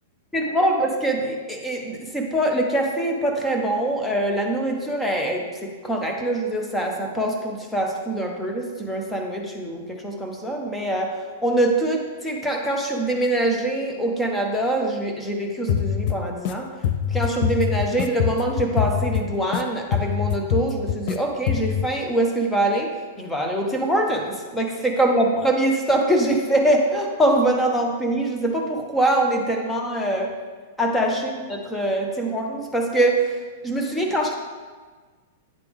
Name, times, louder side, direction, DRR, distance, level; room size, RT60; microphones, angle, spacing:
voice 1, 0.3-11.1 11.4-16.7 17.1-22.9 23.2-30.3 30.8-33.4 33.6-34.3, right 1 dB, 5° left, 1 dB, 0.7 m, -23 dB
sound 1, 15.7-16.5 16.8-19.6 19.9-21.2 21.5-21.9, left 9 dB, 45° left, 0.4 m, -24 dB
9.5 x 3.3 x 3.5 m, 1.4 s
supercardioid pair, 155°, 0 cm